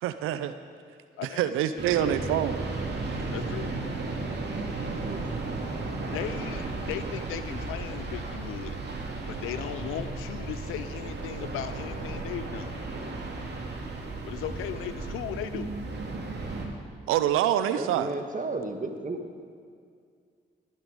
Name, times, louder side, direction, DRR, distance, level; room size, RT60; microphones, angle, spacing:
voice 1, 0.0-0.5 1.2-2.6 17.1-18.1, right 11 dB, 85° right, 12 dB, 0.5 m, -26 dB
voice 2, 1.2-2.4 3.3-3.7 6.1-8.8 9.3-12.8 14.2-15.7, left 11 dB, 85° left, 12 dB, 0.7 m, -37 dB
sound 1, 1.8-16.7, right 3 dB, 55° right, 2.7 m, -34 dB
voice 3, 4.9-5.3 13.0-13.1 17.8-19.2, right 3 dB, 40° right, 5 dB, 1.9 m, -34 dB
21.0 x 9.6 x 5.3 m, 2.2 s
hypercardioid pair, 40°, 21 cm